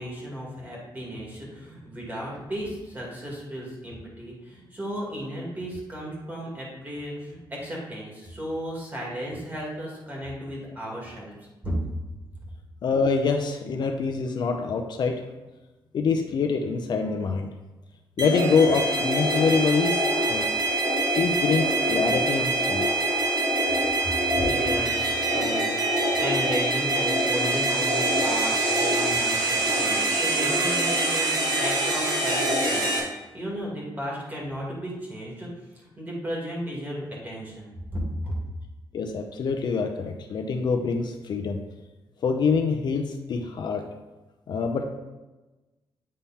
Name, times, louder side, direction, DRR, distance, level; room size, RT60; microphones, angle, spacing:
voice 1, 0.0-11.8 24.4-25.7 26.2-35.5 35.7-38.3, equal, 20° right, -4 dB, 2.3 m, -34 dB
voice 2, 12.8-15.2 15.9-17.5 18.2-20.4 21.2-22.8 38.9-41.6 42.2-43.8 44.5-44.8, left 5 dB, 55° left, 3 dB, 0.6 m, -25 dB
sound 1, 18.2-33.0, right 2 dB, 55° right, 2.3 m, -24 dB
8.5 x 3.7 x 4.2 m, 1.1 s
wide cardioid pair, 135°, 9 cm